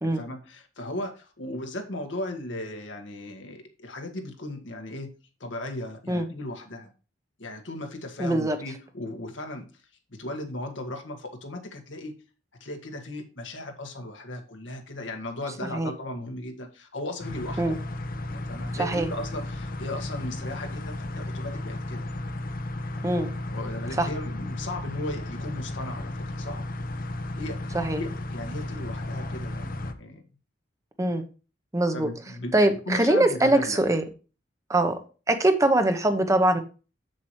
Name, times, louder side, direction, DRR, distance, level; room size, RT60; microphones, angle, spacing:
voice 1, 0.0-5.1 5.4-6.9 7.4-9.8 10.1-12.1 12.6-17.7 18.3-22.1 23.5-26.6 27.3-30.2 31.9-32.6 32.8-33.8, left 1 dB, 85° left, 4 dB, 1.7 m, -36 dB
voice 2, 8.2-8.6 15.7-15.9 17.6-17.8 18.8-19.1 23.0-23.3 24.0-24.1 27.7-28.0 31.0-31.2 31.7-32.1 32.5-34.0 34.7-35.0 35.3-36.6, right 1 dB, 15° right, 7 dB, 0.8 m, -22 dB
sound 1, 17.2-29.9, left 1 dB, 50° left, 0.8 m, -34 dB
7.6 x 7.4 x 3.1 m, 0.34 s
head